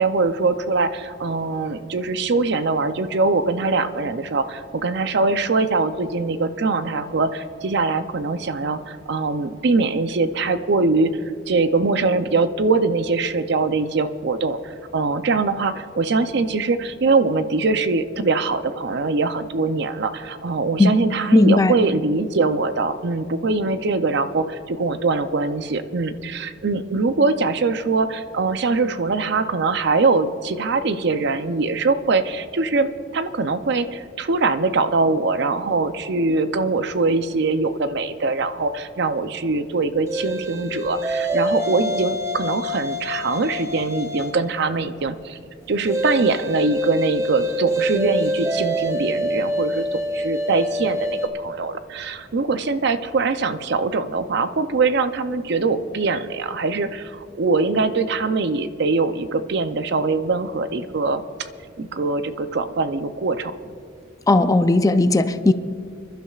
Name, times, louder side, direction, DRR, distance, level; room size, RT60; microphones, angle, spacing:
voice 1, 0.0-11.1 11.5-45.4 45.7-61.2 61.8-63.5, right 3 dB, 60° right, 11 dB, 0.6 m, -22 dB
voice 2, 21.3-21.7 64.3-65.5, left 2 dB, 15° left, 10 dB, 0.4 m, -16 dB
sound 1, 40.1-44.5 45.9-51.3, equal, 15° right, 0.9 m, -26 dB
29.5 x 11.5 x 2.4 m, 2.2 s
head